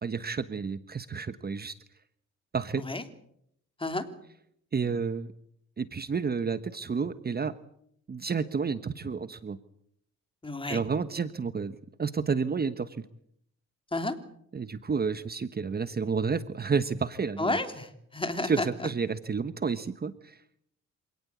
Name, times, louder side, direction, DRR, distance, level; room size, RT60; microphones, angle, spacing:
voice 1, 0.0-1.7 2.5-2.8 4.7-5.3 5.8-7.5 8.1-9.6 10.7-13.0 14.5-17.6 18.4-20.4, right 5 dB, 30° right, 13 dB, 1.2 m, -30 dB
voice 2, 10.4-10.8 13.9-14.2 17.4-18.9, left 2 dB, 15° left, 8 dB, 3.3 m, -31 dB
27.0 x 18.0 x 8.4 m, 0.72 s
cardioid pair, 90°, 30 cm